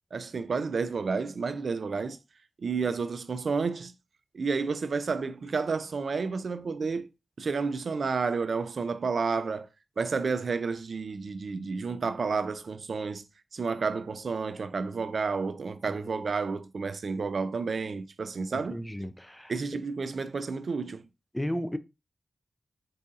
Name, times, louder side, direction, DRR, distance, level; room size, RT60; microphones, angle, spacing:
voice 1, 0.1-2.2 2.6-3.9 4.3-7.1 7.4-9.7 10.0-13.2 13.5-18.8 19.5-21.1, right 4 dB, 70° right, 0.3 m, -31 dB
voice 2, 18.7-19.5 21.3-21.8, equal, 10° left, 0.4 m, -33 dB
4.6 x 2.7 x 2.3 m
cardioid pair, 40°, 0 cm